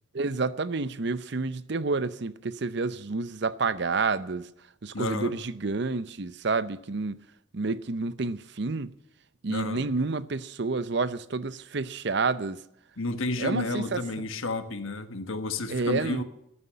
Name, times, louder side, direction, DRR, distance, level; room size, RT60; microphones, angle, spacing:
voice 1, 0.1-4.5 4.8-7.2 7.5-9.0 9.4-12.6 13.4-14.3 15.7-16.2, right 3 dB, 55° right, 0.7 m, -29 dB
voice 2, 4.9-5.3 9.5-9.8 13.0-16.2, left 2 dB, 75° left, 1.4 m, -31 dB
14.0 x 9.6 x 9.9 m
head